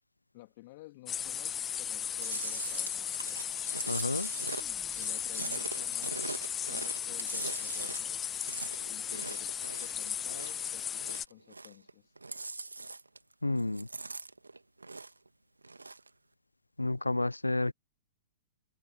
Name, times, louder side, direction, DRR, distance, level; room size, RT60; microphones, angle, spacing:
voice 1, 0.3-3.5 4.9-6.3 6.7-8.2 8.8-9.5 9.8-12.1, left 20 dB, 45° left, 2.6 m, -53 dB
sound 1, 1.1-11.2, left 9 dB, 20° left, 0.8 m, -36 dB
Chewing mastication, 2.2-10.7 11.0-11.9 12.2-13.3 13.6-15.3 15.6-16.1, right 3 dB, 85° right, 1.8 m, -41 dB
voice 2, 3.9-4.3 13.4-13.9 16.8-17.7, left 2 dB, 90° left, 0.3 m, -30 dB
sound 2, 4.4-6.6, left 2 dB, 5° left, 3.5 m, -62 dB
open air
figure-of-eight pair, 110°, 0 cm